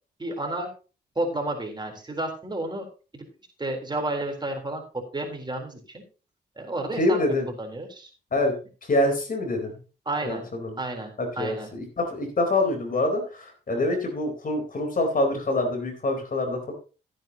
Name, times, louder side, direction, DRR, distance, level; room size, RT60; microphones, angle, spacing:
voice 1, 0.2-0.7 1.2-2.9 3.1-3.3 3.6-6.0 6.6-8.1 10.1-10.4 10.8-11.7, right 2 dB, 25° right, 2 dB, 3.9 m, -31 dB
voice 2, 7.0-7.5 8.3-9.7 10.2-10.7 11.2-16.7, left 2 dB, 50° left, 4 dB, 4.1 m, -26 dB
15.0 x 9.1 x 3.0 m, 0.34 s
cardioid pair, 70°, 18 cm